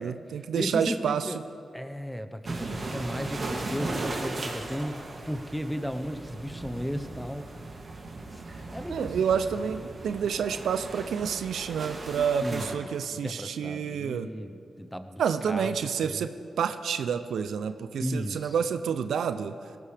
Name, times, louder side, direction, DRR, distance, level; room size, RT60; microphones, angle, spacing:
voice 1, 0.0-1.3 8.9-14.3 15.2-19.5, right 7 dB, 80° right, 10 dB, 0.5 m, -29 dB
voice 2, 0.5-1.4 1.7-7.5 8.3-8.4 8.7-9.2 12.4-15.7 16.0-16.3 18.0-18.5, equal, 5° left, 9 dB, 1.0 m, -35 dB
sound 1, 2.4-12.7, right 2 dB, 55° right, 2.4 m, -37 dB
18.5 x 16.0 x 3.4 m, 2.3 s
supercardioid pair, 45°, 0 cm